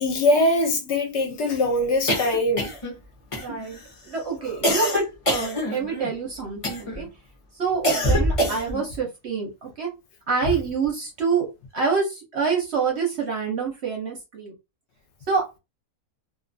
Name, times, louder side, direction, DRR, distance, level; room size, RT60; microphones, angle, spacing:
voice 1, 0.0-2.7, left 1 dB, 60° left, 0.8 m, -22 dB
sound 1, 2.1-3.0 3.3-3.8 4.6-6.1 6.6-7.1 7.8-8.9, equal, 40° left, 0.5 m, -24 dB
voice 2, 3.3-3.8 4.0-5.0 5.3-7.1 7.5-9.9 10.3-11.5 11.7-14.5 15.3-15.6, right 5 dB, 60° right, 0.8 m, -26 dB
2.4 x 2.3 x 2.5 m
omnidirectional pair, 1.6 m